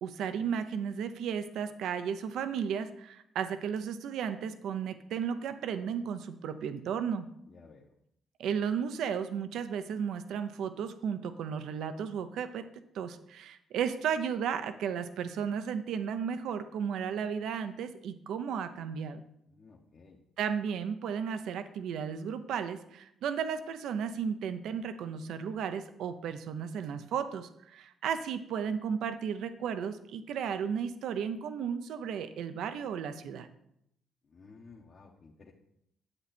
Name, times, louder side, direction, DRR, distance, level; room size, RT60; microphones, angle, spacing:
voice 1, 0.0-7.3 8.4-12.6 12.9-19.2 20.4-33.5, right 7 dB, 80° right, 10 dB, 0.8 m, -34 dB
voice 2, 7.5-7.9 19.5-20.2 34.3-35.5, left 4 dB, 45° left, -2 dB, 1.3 m, -55 dB
9.9 x 8.0 x 4.3 m, 0.75 s
cardioid pair, 90°, 0 cm